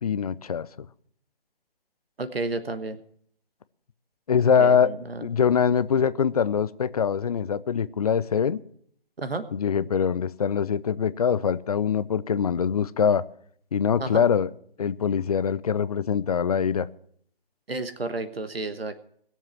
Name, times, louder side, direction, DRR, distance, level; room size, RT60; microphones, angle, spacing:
voice 1, 0.0-0.9 4.3-4.9 5.2-8.6 9.5-13.2 13.7-14.5 14.8-16.9, left 7 dB, 40° left, 16 dB, 0.6 m, -23 dB
voice 2, 2.2-3.0 4.6-5.3 9.2-9.5 14.0-14.2 17.7-19.0, right 3 dB, 80° right, 10 dB, 1.4 m, -31 dB
20.5 x 7.4 x 5.9 m, 0.64 s
figure-of-eight pair, 150°, 30 cm